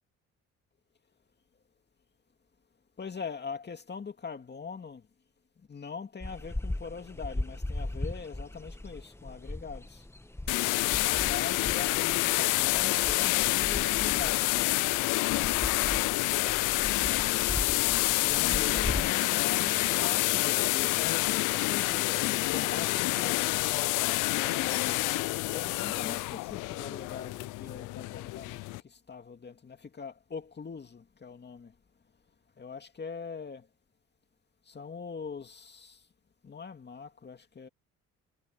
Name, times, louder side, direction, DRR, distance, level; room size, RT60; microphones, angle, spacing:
voice 1, 3.0-5.1 5.6-10.0 10.9-14.7 18.1-23.5 24.3-25.2 25.5-31.7 32.6-33.7 34.7-36.0 36.4-37.7, left 5 dB, 35° left, 2.3 m, -42 dB
sound 1, 6.2-19.1, left 1 dB, 10° left, 1.6 m, -38 dB
sound 2, 10.5-28.8, left 21 dB, 85° left, 0.5 m, -28 dB
cardioid pair, 85°, 30 cm